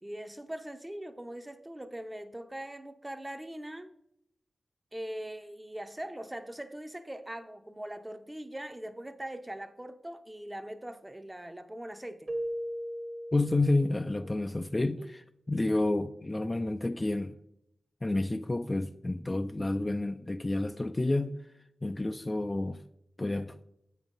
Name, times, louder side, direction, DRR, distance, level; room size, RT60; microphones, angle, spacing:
voice 1, 0.0-3.9 4.9-12.3 15.0-15.1, right 1 dB, 15° right, 0.6 m, -41 dB
Keyboard (musical), 12.3-14.3, equal, 40° right, 0.9 m, -37 dB
voice 2, 13.3-17.3 18.0-21.4 21.8-22.8 23.2-23.6, left 2 dB, 25° left, 0.3 m, -30 dB
8.0 x 5.4 x 3.8 m
cardioid pair, 60°, 0 cm